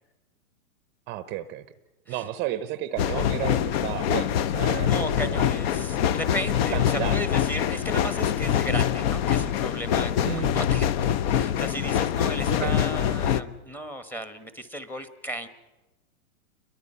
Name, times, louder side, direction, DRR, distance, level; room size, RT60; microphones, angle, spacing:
voice 1, 1.1-1.6 2.1-5.5 6.7-7.2 10.2-10.6 12.5-12.8, right 13 dB, 25° right, 13 dB, 0.7 m, -33 dB
sound 1, 3.0-13.4, left 9 dB, 45° left, 0.9 m, -24 dB
voice 2, 4.7-15.5, equal, 5° left, 10 dB, 1.1 m, -35 dB
29.5 x 22.5 x 5.6 m, 1.1 s
hypercardioid pair, 140°, 43 cm